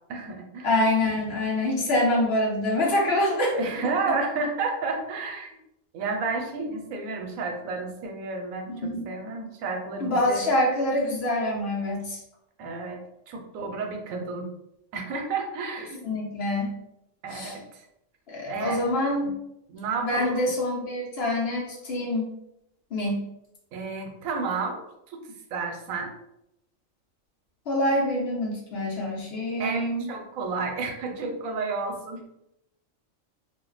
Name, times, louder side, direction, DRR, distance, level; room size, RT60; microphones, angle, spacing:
voice 1, 0.1-0.7 3.5-5.6 5.9-10.5 12.6-13.0 13.3-14.5 14.9-16.1 17.2-17.6 18.5-18.9 19.7-20.5 23.7-25.2 25.5-26.1 29.6-32.3, right 4 dB, 85° right, 3 dB, 1.0 m, -31 dB
voice 2, 0.6-3.5 4.1-4.2 8.7-9.0 10.0-12.2 16.0-16.7 17.3-17.6 18.3-19.4 20.0-22.3 22.9-23.3 27.7-30.1, left 1 dB, 55° left, -2 dB, 0.9 m, -25 dB
2.5 x 2.1 x 3.8 m, 0.82 s
omnidirectional pair, 1.4 m